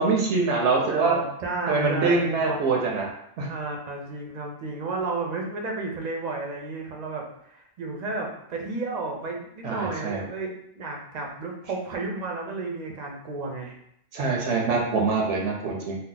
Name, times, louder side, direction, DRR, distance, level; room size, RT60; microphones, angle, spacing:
voice 1, 0.0-1.2 1.7-3.1 3.4-3.5 9.6-10.2 14.1-16.0, right 4 dB, 75° right, 0 dB, 0.9 m, -24 dB
voice 2, 0.9-2.6 3.5-13.8, right 3 dB, 50° right, 0 dB, 0.5 m, -32 dB
2.7 x 2.0 x 3.8 m, 0.72 s
omnidirectional pair, 1.3 m